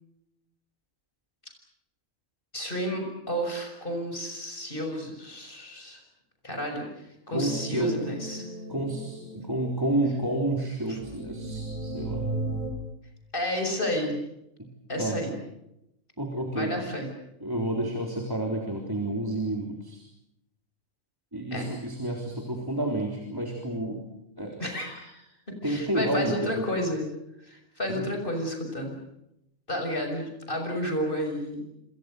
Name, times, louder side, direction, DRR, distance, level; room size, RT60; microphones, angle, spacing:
voice 1, 2.5-6.0 6.4-6.9 7.3-8.4 10.9-11.0 13.3-14.2 14.9-15.3 16.5-17.1 21.5-21.7 24.6-25.2 25.6-27.1 27.4-29.0 29.7-31.7, equal, 40° left, 3 dB, 6.6 m, -31 dB
voice 2, 7.3-8.0 8.7-12.3 14.6-14.7 15.0-15.2 16.2-16.9 17.4-20.0 21.3-24.0 24.4-24.7 25.6-26.5 27.9-28.0, right 1 dB, 15° right, 1 dB, 3.7 m, -30 dB
sound 1, 7.4-10.7 11.0-12.7, right 1 dB, 35° right, 4.2 m, -35 dB
27.5 x 27.0 x 6.7 m, 0.84 s
omnidirectional pair, 1.4 m